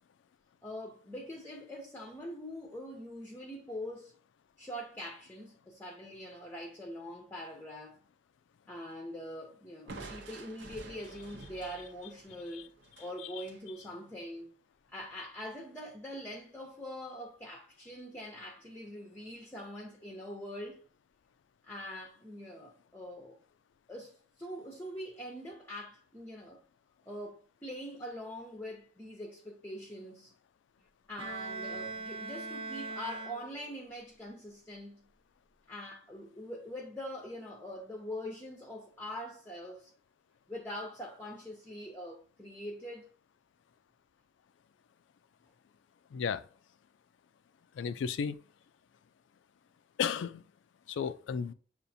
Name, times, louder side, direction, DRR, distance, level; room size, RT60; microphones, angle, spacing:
voice 1, 0.6-4.2 4.6-8.0 8.7-12.7 13.0-14.5 14.9-20.8 21.6-23.4 23.9-26.6 27.1-30.3 31.1-35.1 35.7-39.9 40.5-43.1, equal, 10° left, 0.6 m, -43 dB
Crushing, 9.9-13.7, right 3 dB, 70° right, 0.8 m, -49 dB
Bowed string instrument, 31.2-33.9, right 3 dB, 30° right, 0.6 m, -41 dB
voice 2, 46.1-46.5 47.8-48.4 50.0-50.4 50.9-51.5, left 6 dB, 80° left, 0.3 m, -33 dB
6.7 x 2.5 x 2.6 m
head